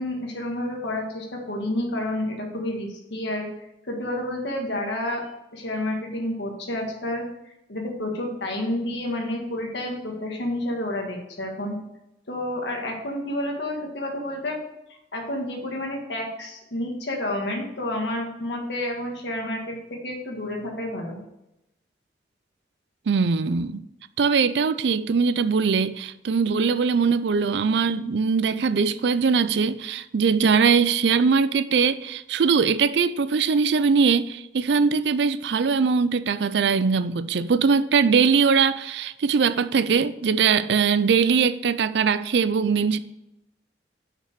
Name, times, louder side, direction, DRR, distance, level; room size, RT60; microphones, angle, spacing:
voice 1, 0.0-3.5 3.8-5.2 5.5-7.3 7.7-11.7 12.3-14.6 15.1-21.2, left 1 dB, 75° left, 1.6 m, -30 dB
voice 2, 23.1-23.8 24.2-43.0, right 5 dB, 70° right, 0.4 m, -21 dB
5.9 x 5.9 x 6.6 m
head